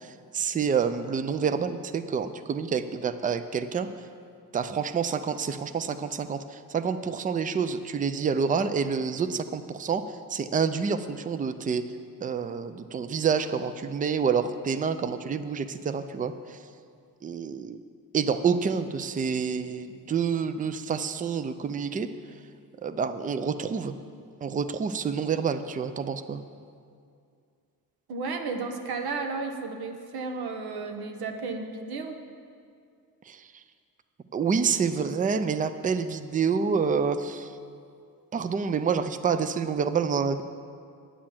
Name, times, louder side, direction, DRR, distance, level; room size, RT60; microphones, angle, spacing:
voice 1, 0.0-3.9 4.5-11.8 12.2-16.6 17.2-17.8 18.1-22.1 22.8-23.9 24.4-26.4 33.3-33.5 34.3-37.5 38.3-40.4, right 6 dB, 20° right, 11 dB, 0.4 m, -28 dB
voice 2, 28.1-32.2, right 4 dB, 75° right, 5 dB, 1.3 m, -33 dB
9.7 x 8.6 x 7.3 m, 2.3 s
cardioid pair, 135°, 38 cm